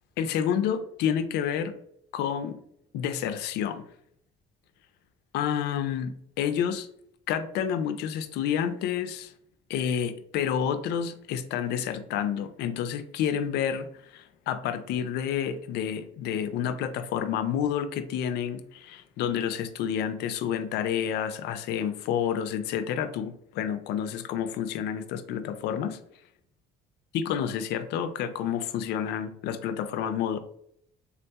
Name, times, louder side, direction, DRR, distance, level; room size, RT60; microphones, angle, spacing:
voice 1, 0.2-1.7 2.1-2.6 2.9-3.8 5.3-6.9 7.3-9.3 9.7-13.9 14.1-26.0 27.1-30.4, left 8 dB, 80° left, 10 dB, 0.4 m, -29 dB
3.6 x 2.7 x 2.2 m, 0.71 s
cardioid pair, 110°, 17 cm